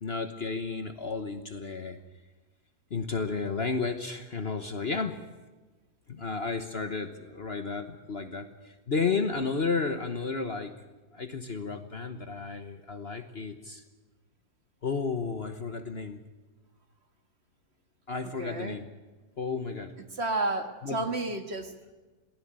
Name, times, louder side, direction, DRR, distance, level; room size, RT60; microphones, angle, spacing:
voice 1, 0.0-2.0 2.9-5.2 6.1-10.7 11.1-13.8 14.8-16.2 18.1-18.8 19.4-20.0 20.8-21.0, left 4 dB, 40° left, 8 dB, 1.2 m, -32 dB
voice 2, 18.4-18.8 20.1-21.9, right 2 dB, 40° right, 7 dB, 1.9 m, -31 dB
22.5 x 15.5 x 8.9 m, 1.2 s
omnidirectional pair, 1.8 m